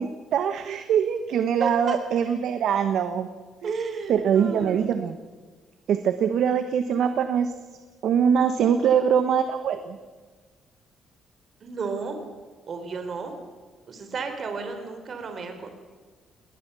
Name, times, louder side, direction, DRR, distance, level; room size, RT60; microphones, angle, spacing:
voice 1, 0.0-3.3 3.6-3.7 4.1-5.2 5.9-7.5 8.0-10.0, right 8 dB, 75° right, 9 dB, 1.2 m, -23 dB
voice 2, 1.6-2.0 3.6-4.8 11.6-12.2 12.7-13.3 13.9-15.7, right 4 dB, 50° right, 6 dB, 3.8 m, -32 dB
20.5 x 19.5 x 6.9 m, 1.4 s
cardioid pair, 90°, 0 cm